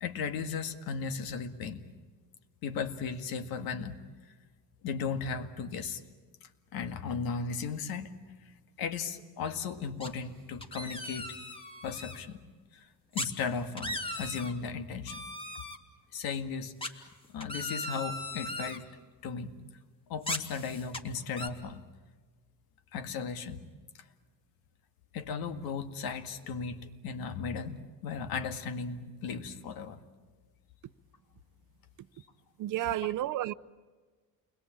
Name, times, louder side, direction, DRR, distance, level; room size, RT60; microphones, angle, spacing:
voice 1, 0.0-1.8 2.6-4.0 4.8-6.0 6.4-8.1 8.8-11.3 11.8-12.4 12.7-15.2 16.1-18.9 19.2-19.5 20.1-21.8 22.9-23.6 25.1-30.0 33.0-33.1, left 5 dB, 80° left, 2.0 m, -36 dB
sound 1, 10.0-10.3 10.6-12.2 13.2-13.3 13.6-14.5 15.1-15.8 16.8-18.8 20.2-21.0 21.4-21.5, left 1 dB, 15° left, 2.1 m, -38 dB
voice 2, 32.6-33.5, right 14 dB, 60° right, 0.7 m, -31 dB
29.0 x 21.5 x 8.8 m
cardioid pair, 145°, 35 cm